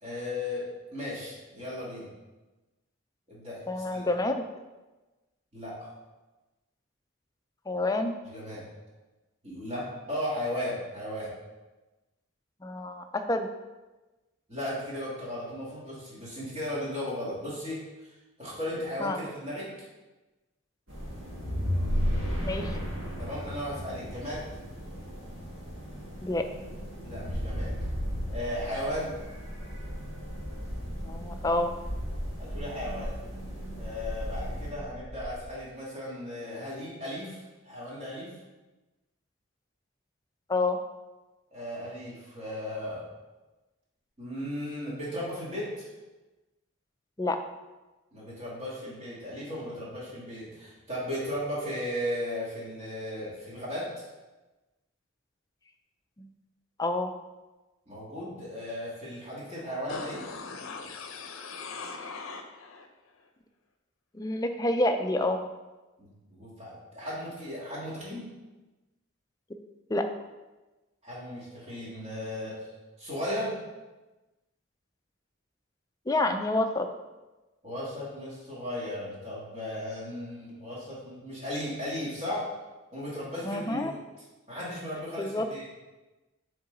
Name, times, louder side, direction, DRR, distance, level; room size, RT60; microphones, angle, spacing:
voice 1, 0.0-2.1 3.3-4.0 5.5-5.9 8.3-8.6 9.4-11.3 14.5-18.1 18.4-19.9 23.2-24.4 27.0-27.7 28.3-29.1 32.4-33.1 33.8-38.3 41.5-43.1 44.2-45.9 48.1-54.1 57.9-60.2 66.0-68.3 71.0-72.7 73.0-73.6 77.6-82.5 82.9-83.9 84.5-85.7, left 1 dB, 30° right, -7 dB, 2.0 m, -36 dB
voice 2, 3.7-4.5 7.7-8.1 12.6-13.5 19.0-19.2 22.4-22.8 26.2-26.5 31.0-31.7 40.5-40.8 47.2-47.4 56.2-56.3 56.8-57.1 64.1-65.4 69.9-70.1 76.1-76.9 83.4-83.9 85.2-85.5, left 2 dB, 20° left, 6 dB, 0.3 m, -28 dB
sound 1, 20.9-34.7, equal, 80° right, 1.9 m, -36 dB
sound 2, 27.3-35.4, equal, 60° right, 1.5 m, -37 dB
sound 3, 59.9-62.9 63.2-63.3, left 4 dB, 80° left, 0.6 m, -40 dB
7.0 x 3.7 x 3.8 m, 1.1 s
head